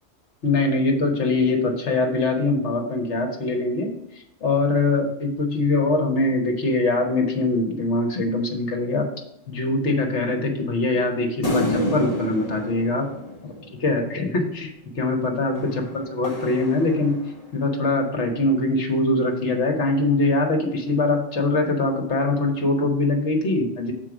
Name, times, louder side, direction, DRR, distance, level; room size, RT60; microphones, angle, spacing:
voice 1, 0.4-3.9 4.4-9.1 9.5-13.1 13.8-17.2 17.5-23.9, left 2 dB, 65° left, 3 dB, 1.5 m, -23 dB
sound 1, 11.4-14.1 15.6-17.6, left 1 dB, 30° left, 1.3 m, -29 dB
6.4 x 4.6 x 6.1 m, 0.82 s
omnidirectional pair, 1.3 m